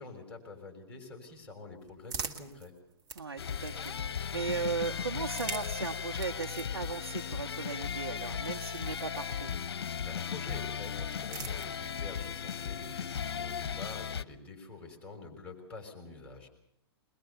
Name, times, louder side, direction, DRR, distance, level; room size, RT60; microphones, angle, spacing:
voice 1, 0.0-2.7 10.0-16.5, left 3 dB, 10° left, 1 dB, 5.9 m, -47 dB
sound 1, 1.3-4.3 5.1-9.7 10.7-12.2, right 5 dB, 25° right, 1.7 m, -46 dB
voice 2, 3.2-3.9 4.3-9.5, right 5 dB, 85° right, 3 dB, 1.3 m, -37 dB
sound 2, 3.4-14.2, left 7 dB, 70° left, 0.8 m, -36 dB
22.0 x 21.5 x 7.0 m, 0.74 s
hypercardioid pair, 125°, 13 cm